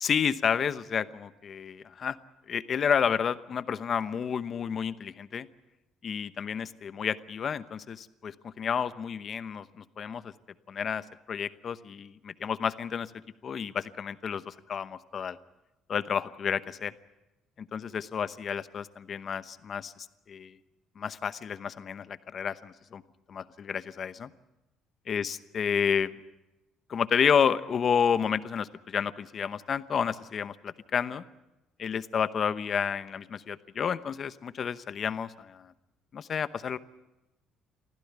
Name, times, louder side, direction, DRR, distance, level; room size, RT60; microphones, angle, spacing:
voice 1, 0.0-2.2 2.5-5.5 6.0-10.3 10.7-13.1 13.4-15.4 15.9-16.9 17.6-19.9 20.3-20.6 21.0-23.0 23.3-24.3 25.1-26.1 26.9-31.2 31.8-35.7 36.1-36.8, left 7 dB, 35° left, 13 dB, 0.9 m, -30 dB
24.5 x 15.5 x 9.4 m, 0.98 s
cardioid pair, 145°, 0 cm